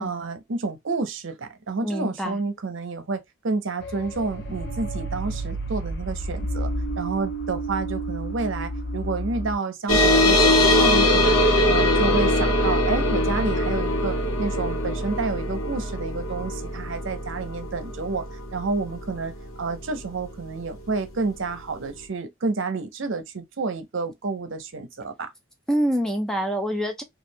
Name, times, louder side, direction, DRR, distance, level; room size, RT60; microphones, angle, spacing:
voice 1, 0.0-11.4 11.6-18.3 18.5-19.3 19.6-25.3, right 3 dB, 65° right, 0.6 m, -29 dB
voice 2, 1.8-2.4 25.7-27.0, equal, 5° left, 0.4 m, -25 dB
sound 1, 3.8-9.6, right 1 dB, 55° left, 0.6 m, -31 dB
sound 2, 9.9-20.8, left 1 dB, 80° left, 1.2 m, -22 dB
3.1 x 2.5 x 2.6 m
head